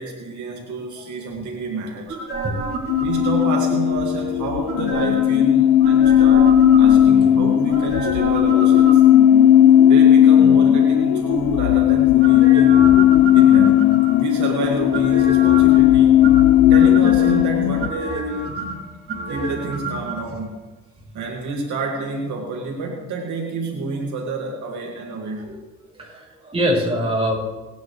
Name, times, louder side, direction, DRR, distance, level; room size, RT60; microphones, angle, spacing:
voice 1, 0.0-2.2 3.0-9.0 9.8-12.9 13.3-16.1 16.6-18.5 19.3-20.6 21.1-25.5, right 3 dB, 75° right, -1 dB, 2.3 m, -28 dB
sound 1, 2.1-3.9 4.6-5.4 5.8-7.3 7.7-9.4 12.2-14.3 14.9-15.8 16.2-17.4 17.8-20.2 20.4-20.5, right 3 dB, 45° right, 4.2 m, -29 dB
sound 2, 2.9-17.9, left 11 dB, 85° left, 0.7 m, -15 dB
voice 2, 25.9-27.4, equal, 20° right, -3 dB, 5.9 m, -23 dB
27.0 x 9.7 x 3.4 m, 1.1 s
cardioid pair, 90°, 30 cm